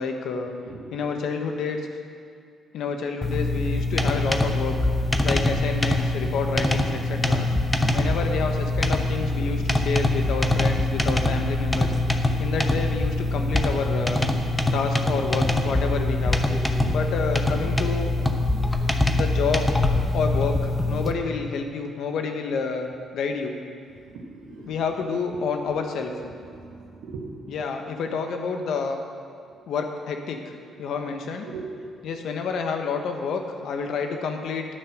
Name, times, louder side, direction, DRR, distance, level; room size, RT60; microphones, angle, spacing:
voice 1, 0.0-0.5 0.9-1.8 2.7-4.8 5.2-7.5 7.9-11.9 12.4-14.2 14.7-16.4 16.9-18.1 19.1-19.7 20.1-22.9 23.1-23.6 24.7-26.1 27.5-29.0 29.7-30.5 30.8-31.5 32.0-34.7, left 5 dB, 75° left, 4 dB, 1.3 m, -29 dB
sound 1, 3.2-21.1, left 2 dB, 15° left, 0.9 m, -24 dB
voice 2, 24.1-24.7 26.5-27.3 31.4-31.9, right 4 dB, 85° right, 0 dB, 1.8 m, -39 dB
10.0 x 8.9 x 6.4 m, 2.2 s
cardioid pair, 90°, 0 cm